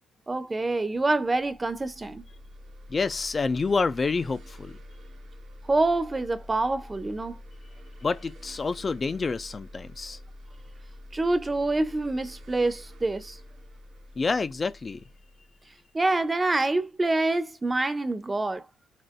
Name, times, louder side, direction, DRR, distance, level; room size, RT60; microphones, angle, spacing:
voice 1, 0.3-2.2 5.7-7.4 11.1-13.4 15.9-18.6, right 2 dB, 25° right, 0.7 m, -26 dB
sound 1, 1.2-16.6, left 1 dB, 65° right, 1.4 m, -47 dB
voice 2, 2.9-4.8 8.0-10.2 14.2-15.0, left 4 dB, 35° left, 0.3 m, -28 dB
7.4 x 2.5 x 2.2 m
supercardioid pair, 65°, 0 cm